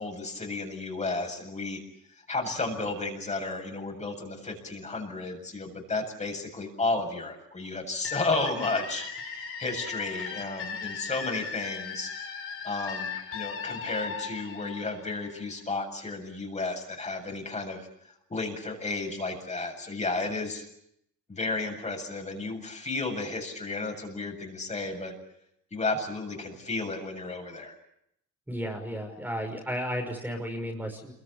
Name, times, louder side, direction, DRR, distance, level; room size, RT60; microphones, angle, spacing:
voice 1, 0.0-1.8 2.3-12.1 12.6-17.9 18.3-20.6 21.3-25.1 25.7-27.7, left 3 dB, 25° left, 3 dB, 7.6 m, -33 dB
sound 1, 8.0-15.6, left 6 dB, 45° left, 6.9 m, -37 dB
voice 2, 28.5-31.1, equal, 5° right, 1 dB, 5.9 m, -33 dB
28.0 x 23.5 x 8.4 m, 0.78 s
cardioid pair, 120°, 30 cm